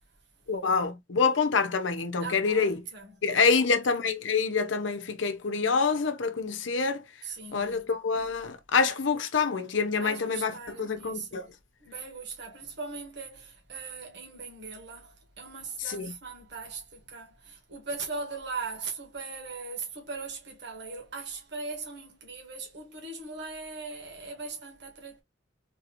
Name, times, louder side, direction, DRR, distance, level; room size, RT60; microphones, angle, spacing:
voice 1, 0.5-2.8 3.2-7.0 7.5-11.5 15.8-16.2, left 5 dB, 90° left, 0.8 m, -26 dB
voice 2, 2.2-3.8 7.2-7.8 9.9-11.5 11.8-25.2, right 4 dB, 65° right, 1.4 m, -40 dB
3.9 x 2.6 x 2.8 m
head